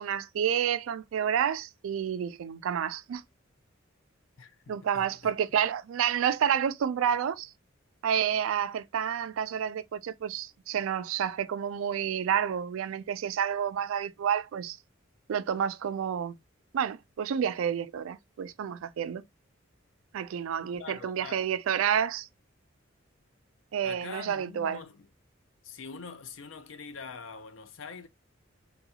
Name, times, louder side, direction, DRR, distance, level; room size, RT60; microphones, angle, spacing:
voice 1, 0.0-3.2 4.7-7.5 8.0-14.8 15.3-16.4 16.7-19.2 20.1-22.3 23.7-24.8, right 8 dB, 80° right, 0.3 m, -29 dB
voice 2, 4.4-5.3 20.8-21.4 23.8-25.1 25.6-28.1, left 5 dB, 70° left, 0.5 m, -44 dB
3.7 x 2.3 x 2.7 m
head